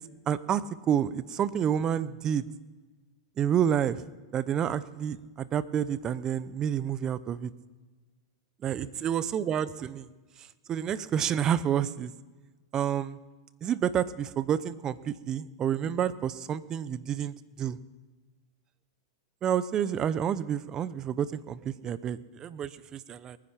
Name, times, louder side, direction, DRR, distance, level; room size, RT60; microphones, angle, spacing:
voice 1, 0.3-2.5 3.4-4.0 4.3-7.5 8.6-10.1 10.7-12.1 12.7-13.2 13.6-17.8 19.4-23.4, right 9 dB, 30° right, 17 dB, 0.7 m, -29 dB
20.5 x 10.0 x 5.9 m, 1.3 s
hypercardioid pair, 120°, 2 cm